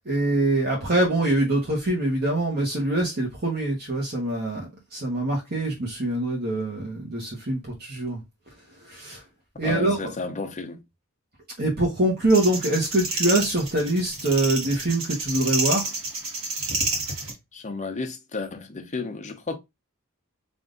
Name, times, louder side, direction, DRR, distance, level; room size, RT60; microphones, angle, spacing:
voice 1, 0.1-8.2 8.8-9.2 9.6-10.1 11.6-15.9, right 1 dB, 45° right, 1.1 m, -24 dB
voice 2, 9.6-10.8 17.5-19.6, left 3 dB, 35° left, 0.8 m, -32 dB
sound 1, 12.3-17.3, right 3 dB, 65° right, 1.5 m, -29 dB
3.6 x 2.6 x 3.8 m
head